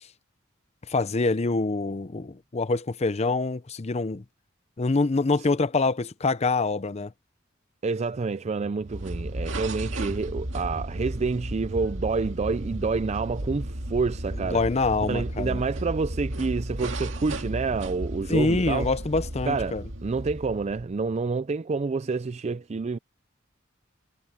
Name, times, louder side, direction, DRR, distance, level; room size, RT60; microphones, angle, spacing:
voice 1, 0.9-4.2 4.8-7.1 14.5-15.6 18.3-19.8, left 3 dB, 35° left, 0.6 m, -25 dB
voice 2, 7.8-14.6 15.1-18.9 19.4-23.0, right 4 dB, 35° right, 0.4 m, -28 dB
sound 1, 8.8-21.0, right 1 dB, 70° right, 2.2 m, -34 dB
head